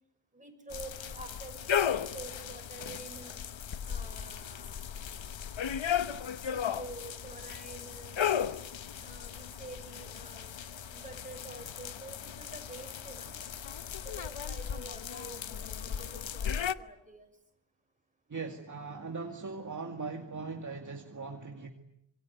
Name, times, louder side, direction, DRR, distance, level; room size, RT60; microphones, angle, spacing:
voice 1, 0.3-3.3 3.8-4.9 6.4-8.2 9.0-10.6 10.9-13.4 14.0-17.3, right 2 dB, 15° right, 5 dB, 5.9 m, -48 dB
sound 1, 0.7-16.7, left 8 dB, 70° left, 1.0 m, -36 dB
voice 2, 18.3-21.7, right 4 dB, 40° right, 4 dB, 2.2 m, -39 dB
27.0 x 23.0 x 9.6 m, 0.77 s
wide cardioid pair, 125°, 47 cm